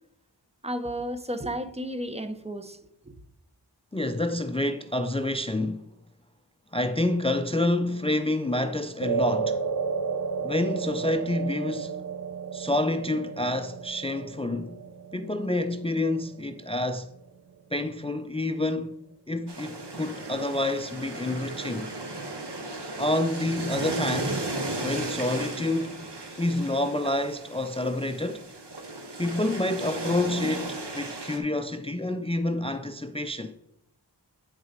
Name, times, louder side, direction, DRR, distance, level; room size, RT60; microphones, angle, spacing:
voice 1, 0.6-2.8 3.0-3.2, equal, 15° right, 0.7 m, -33 dB
voice 2, 3.9-5.8 6.7-9.6 10.4-12.0 12.5-14.8 15.1-17.1 17.7-18.9 19.3-21.9 23.0-24.4 24.8-26.0 26.4-28.4 29.2-33.6, left 1 dB, 15° left, 0.4 m, -28 dB
sound 1, 9.0-17.5, right 5 dB, 55° right, 0.5 m, -33 dB
sound 2, 19.5-31.4, right 2 dB, 70° right, 1.3 m, -35 dB
9.0 x 4.1 x 5.0 m
wide cardioid pair, 40°, 42 cm